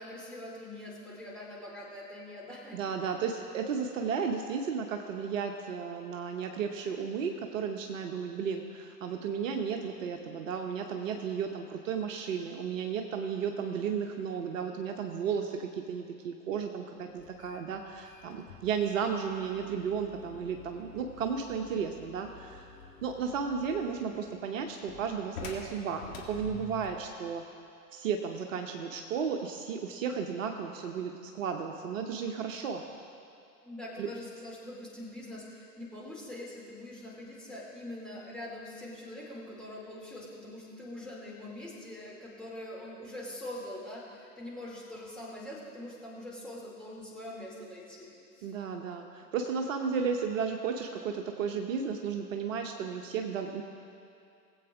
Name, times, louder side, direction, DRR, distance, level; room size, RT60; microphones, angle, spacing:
voice 1, 0.0-2.8 33.6-48.6, left 1 dB, ahead, -6 dB, 2.5 m, -43 dB
voice 2, 2.7-27.4 27.9-32.8 34.0-34.1 48.4-53.6, right 6 dB, 55° right, 4 dB, 0.9 m, -34 dB
sound 1, 17.2-27.1, left 5 dB, 55° left, 1.8 m, -49 dB
19.5 x 8.0 x 3.5 m, 2.5 s
figure-of-eight pair, 95°, 47 cm